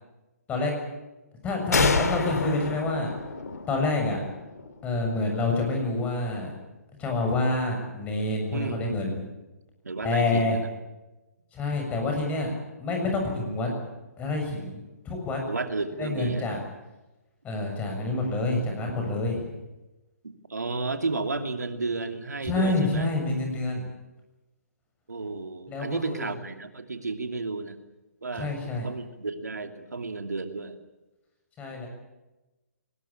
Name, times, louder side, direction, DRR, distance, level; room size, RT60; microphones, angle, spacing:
voice 1, 1.4-3.1 3.7-4.2 4.8-6.5 7.0-9.1 10.0-10.6 11.5-12.5 12.8-13.7 14.2-14.8 15.1-15.4 16.0-16.6 17.4-19.5 22.4-23.9 25.7-26.3 28.3-28.9 31.6-31.9, left 2 dB, 15° left, 2 dB, 7.1 m, -27 dB
sound 1, 1.7-5.2, left 4 dB, 75° left, 2.7 m, -28 dB
voice 2, 8.5-9.3 9.8-10.7 15.5-16.6 20.2-23.1 25.1-27.8 28.2-30.8, right 3 dB, 85° right, 7 dB, 2.6 m, -32 dB
22.5 x 20.0 x 8.7 m, 1.1 s
hypercardioid pair, 140°, 9 cm